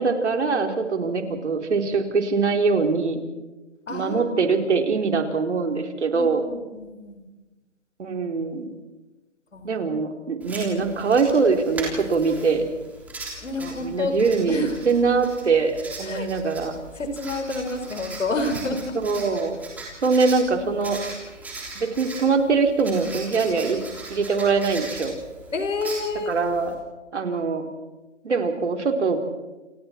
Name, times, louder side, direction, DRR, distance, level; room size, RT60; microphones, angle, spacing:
voice 1, 0.0-3.2 3.9-6.4 8.0-8.7 9.6-12.6 13.6-15.7 16.0-16.7 19.0-19.6 20.0-21.0 21.8-23.8 24.1-25.1 26.3-26.7 27.1-27.7 28.2-29.3, right 4 dB, 65° right, 4 dB, 3.8 m, -23 dB
voice 2, 1.0-1.4 3.9-4.7 6.1-7.2 9.5-9.8 13.4-14.1 14.5-14.8 16.0-16.3 17.0-19.0 25.5-26.4, left 2 dB, 80° left, 6 dB, 5.3 m, -29 dB
Writing, 10.4-26.7, right 2 dB, 5° right, 3.4 m, -39 dB
28.5 x 28.0 x 4.5 m, 1.1 s
hypercardioid pair, 160°, 38 cm